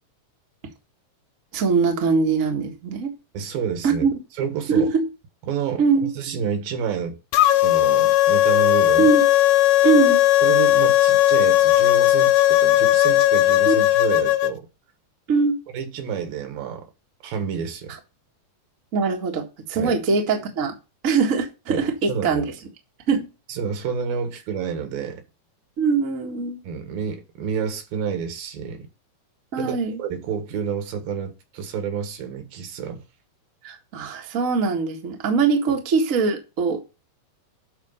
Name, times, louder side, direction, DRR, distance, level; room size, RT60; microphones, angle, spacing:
voice 1, 1.5-3.1 3.8-4.1 4.7-5.1 5.8-6.1 9.0-9.2 9.8-10.2 13.6-13.7 15.3-15.6 18.9-20.7 21.0-22.4 23.1-23.3 25.8-26.6 29.5-30.0 33.6-36.8, right 5 dB, 40° right, 1.2 m, -22 dB
voice 2, 3.3-4.1 4.4-4.9 5.5-5.8 6.2-7.2 7.6-9.1 10.4-14.7 15.7-16.9 17.2-17.9 19.8-20.0 21.7-22.5 23.5-25.2 26.6-28.9 29.6-33.0, right 7 dB, 80° right, 3.3 m, -29 dB
sound 1, 7.3-14.5, left 15 dB, 80° left, 2.2 m, -17 dB
11.5 x 4.1 x 5.5 m
omnidirectional pair, 4.0 m